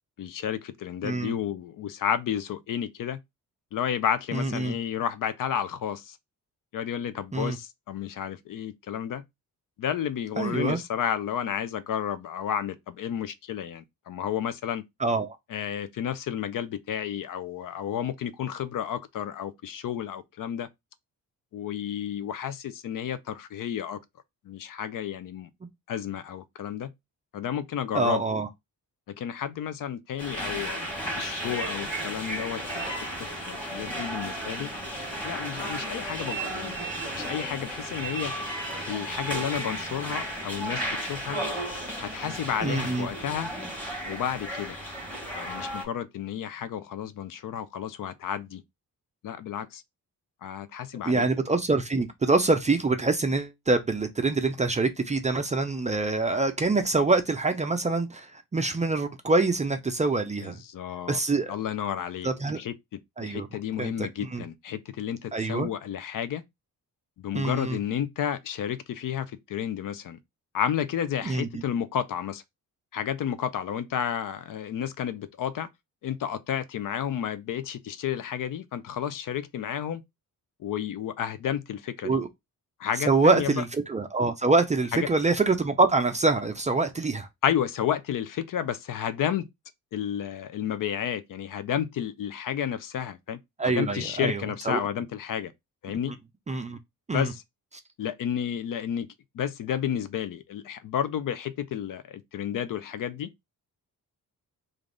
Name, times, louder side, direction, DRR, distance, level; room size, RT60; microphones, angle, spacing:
voice 1, 0.2-3.2 3.7-6.2 6.7-9.2 9.8-14.8 15.5-20.7 21.5-24.0 24.4-25.5 25.9-26.9 27.3-28.2 29.1-32.9 33.2-34.7 35.2-36.8 37.1-38.3 38.9-41.4 42.0-43.5 44.1-44.8 45.3-48.6 49.2-49.8 50.4-51.3 60.4-61.2 61.5-62.3 62.6-62.7 63.2-66.4 67.2-70.2 70.5-72.4 72.9-75.7 76.0-80.0 80.6-82.2 82.8-83.6 84.9-85.1 87.4-89.5 89.9-95.5 95.8-96.1 97.1-97.4 98.0-99.1 99.3-103.3, left 9 dB, 60° left, 0.5 m, -31 dB
voice 2, 4.3-4.8 7.3-7.6 10.4-10.8 15.0-15.4 27.9-28.5 42.6-43.1 51.0-60.6 61.1-61.5 62.2-62.6 63.2-63.5 63.8-64.4 65.3-65.7 67.3-67.8 71.3-71.6 82.0-82.3 83.0-87.3 93.6-94.8 96.5-96.8 97.1-97.3, right 3 dB, 20° right, 0.4 m, -25 dB
sound 1, 30.2-45.8, right 1 dB, 5° left, 1.3 m, -34 dB
3.4 x 2.5 x 3.7 m
wide cardioid pair, 155°, 36 cm